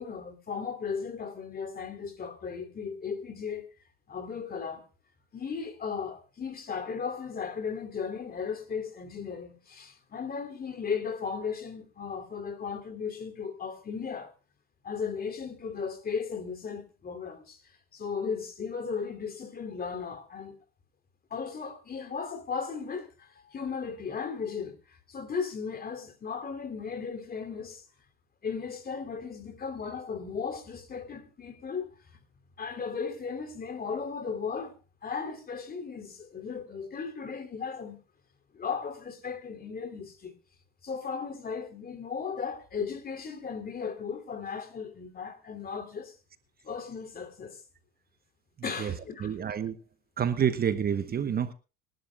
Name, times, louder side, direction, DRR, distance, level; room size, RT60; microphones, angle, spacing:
voice 1, 0.0-3.7 4.1-4.9 5.3-14.3 14.8-20.6 21.3-27.8 28.4-31.9 32.6-34.8 35.0-38.0 38.5-40.3 40.8-46.1 46.6-47.6 48.6-49.3, left 6 dB, 30° left, 3.0 m, -36 dB
voice 2, 49.2-49.8 50.2-51.5, right 8 dB, 30° right, 1.0 m, -28 dB
26.5 x 11.5 x 2.3 m
supercardioid pair, 95°, 29 cm